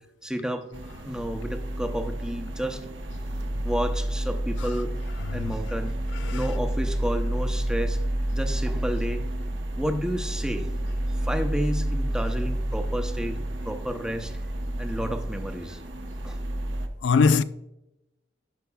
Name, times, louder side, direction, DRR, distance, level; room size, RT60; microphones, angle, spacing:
voice 1, 0.2-0.7 1.0-2.8 3.6-4.9 5.3-6.0 6.3-8.0 8.3-9.3 9.8-14.4 14.8-15.8 16.2-16.4, equal, 5° right, 0.7 m, -31 dB
sound 1, 0.7-16.9, right 1 dB, 80° right, 1.0 m, -30 dB
voice 2, 5.2-5.5 6.1-6.5 17.0-17.4, left 5 dB, 80° left, 0.4 m, -23 dB
17.0 x 5.9 x 2.3 m
head